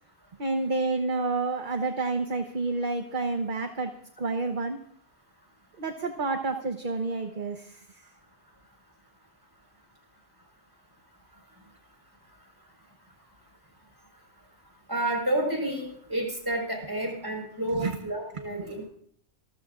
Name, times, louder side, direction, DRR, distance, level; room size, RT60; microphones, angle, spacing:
voice 1, 0.4-3.9 4.2-4.8 5.8-7.8 17.7-18.0 18.6-18.8, right 3 dB, 45° right, 5 dB, 1.1 m, -29 dB
voice 2, 14.9-18.9, right 1 dB, 20° right, 0 dB, 4.8 m, -30 dB
27.5 x 13.5 x 2.5 m, 0.63 s
omnidirectional pair, 1.2 m